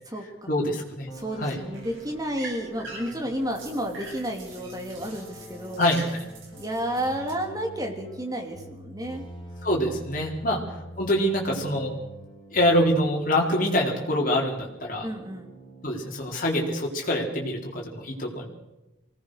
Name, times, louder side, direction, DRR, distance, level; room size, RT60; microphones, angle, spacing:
voice 1, 0.5-1.1 1.4-1.6 5.8-6.2 9.6-10.6 11.0-11.9 12.5-15.1 15.8-18.5, left 1 dB, 40° left, -2 dB, 4.3 m, -25 dB
sound 1, 1.1-14.8 15.1-16.3, equal, 25° left, 3.5 m, -45 dB
voice 2, 1.1-5.9 6.6-9.2 10.5-10.8 15.0-15.5, equal, 20° right, 2 dB, 2.9 m, -31 dB
sound 2, 1.1-7.3, right 2 dB, 70° right, 8.0 m, -44 dB
24.0 x 18.5 x 6.6 m, 0.98 s
head